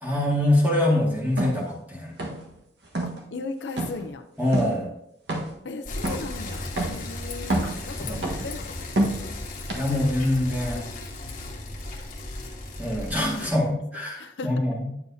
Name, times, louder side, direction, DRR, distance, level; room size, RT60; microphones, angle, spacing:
voice 1, 0.0-2.1 4.4-4.9 7.9-8.3 9.7-10.9 12.8-14.9, left 1 dB, 10° right, -4 dB, 1.9 m, -24 dB
sound 1, 1.4-1.6 2.2-2.5 2.8-3.2 3.8-4.0 4.5-4.7 5.3-5.6 6.0-6.3 6.8-7.0 7.4-7.8 8.2-8.5 8.9-9.3 9.7-9.8, right 1 dB, 65° right, 1.4 m, -27 dB
voice 2, 3.0-4.2 5.6-8.9 9.2-9.3 13.3-13.5 14.2-14.5, left 3 dB, 75° left, 6 dB, 0.6 m, -37 dB
Bicycle, 5.9-13.6, left 2 dB, 45° left, 1.2 m, -36 dB
9.4 x 7.1 x 2.7 m, 0.78 s
head